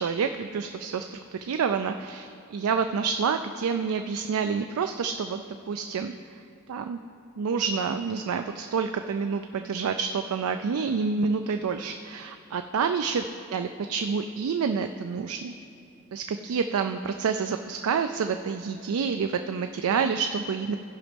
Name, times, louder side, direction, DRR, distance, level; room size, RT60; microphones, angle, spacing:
voice 1, 0.0-6.1 6.7-7.0 7.4-13.2 13.5-15.5 16.1-20.8, right 5 dB, 80° right, 7 dB, 0.4 m, -28 dB
15.5 x 5.2 x 5.2 m, 2.6 s
head